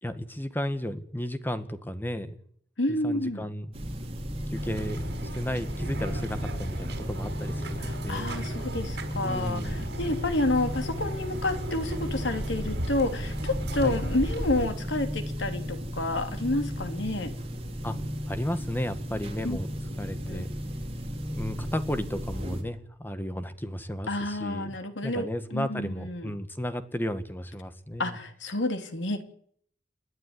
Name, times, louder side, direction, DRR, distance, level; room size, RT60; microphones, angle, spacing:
voice 1, 0.0-2.3 2.9-3.7 4.5-5.0 5.3-8.4 9.2-9.9 13.8-14.0 17.8-18.0 18.3-19.7 20.0-20.5 21.3-24.8 25.0-28.2, equal, 10° left, 10 dB, 1.6 m, -33 dB
voice 2, 2.8-3.5 7.8-17.3 19.4-19.6 20.3-20.4 24.1-26.3 28.0-29.2, left 2 dB, 85° left, 7 dB, 3.1 m, -29 dB
sound 1, 3.7-22.6, equal, 35° right, 4.0 m, -35 dB
sound 2, 4.5-14.7, right 1 dB, 65° right, 5.4 m, -36 dB
29.5 x 11.5 x 9.9 m, 0.64 s
head